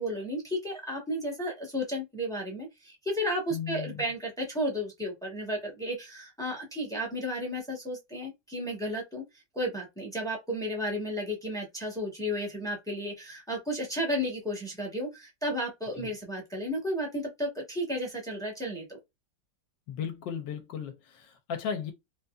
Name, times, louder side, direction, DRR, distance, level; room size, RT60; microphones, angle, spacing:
voice 1, 0.0-9.2 9.5-19.0, equal, 5° left, 0.5 m, -33 dB
voice 2, 3.5-4.0 16.0-16.1 19.9-21.9, left 7 dB, 75° left, 1.3 m, -36 dB
4.0 x 2.6 x 2.3 m
omnidirectional pair, 2.0 m